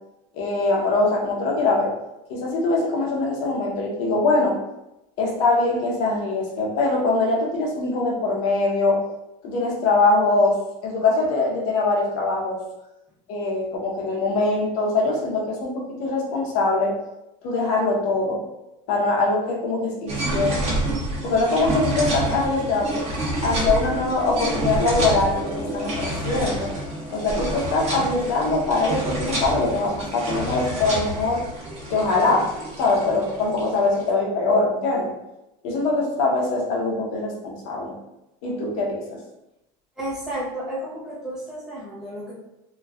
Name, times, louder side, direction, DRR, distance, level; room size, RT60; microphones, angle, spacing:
voice 1, 0.3-1.9 2.3-4.6 5.2-9.0 9.4-12.6 13.3-16.9 17.4-18.4 18.9-20.7 21.2-23.0 23.4-26.7 27.1-31.4 31.9-32.5 32.8-35.1 35.6-37.9 38.4-39.2, left 3 dB, 80° left, -2 dB, 0.8 m, -22 dB
sound 1, 20.1-34.0, right 1 dB, 40° right, 0.9 m, -28 dB
sound 2, 24.8-31.0, left 2 dB, 35° left, 0.6 m, -40 dB
voice 2, 40.0-42.3, right 1 dB, 5° right, -8 dB, 0.9 m, -32 dB
3.0 x 2.2 x 2.3 m, 0.91 s
cardioid pair, 145°, 17 cm